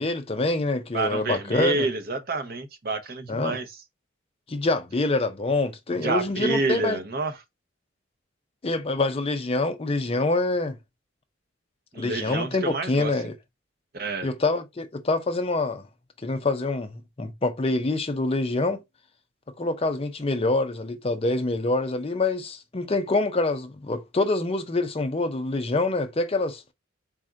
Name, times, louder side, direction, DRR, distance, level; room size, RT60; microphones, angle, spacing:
voice 1, 0.0-1.9 3.3-3.6 4.5-7.0 8.6-10.8 12.0-13.3 14.2-15.8 16.2-18.8 19.6-26.6, left 2 dB, 30° left, 0.5 m, -26 dB
voice 2, 0.9-3.7 5.9-7.4 11.9-13.1 13.9-14.3, right 3 dB, 50° right, 0.7 m, -28 dB
4.2 x 2.4 x 3.8 m
head